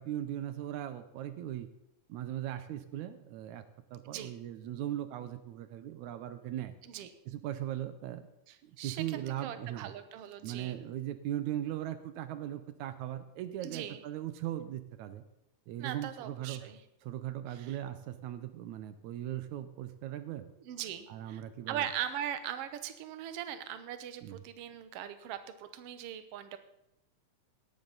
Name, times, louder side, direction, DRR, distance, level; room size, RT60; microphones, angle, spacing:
voice 1, 0.0-1.7 2.1-3.6 3.9-6.7 7.3-8.2 8.6-9.9 10.4-15.2 15.7-16.6 17.0-20.5 21.1-21.9 24.2-24.4, right 12 dB, 80° right, 11 dB, 2.2 m, -39 dB
voice 2, 8.5-10.8 13.6-14.0 15.8-16.8 17.5-17.8 20.6-21.4 21.7-26.6, right 10 dB, 65° right, 10 dB, 1.7 m, -40 dB
17.5 x 12.0 x 4.0 m, 0.87 s
omnidirectional pair, 3.4 m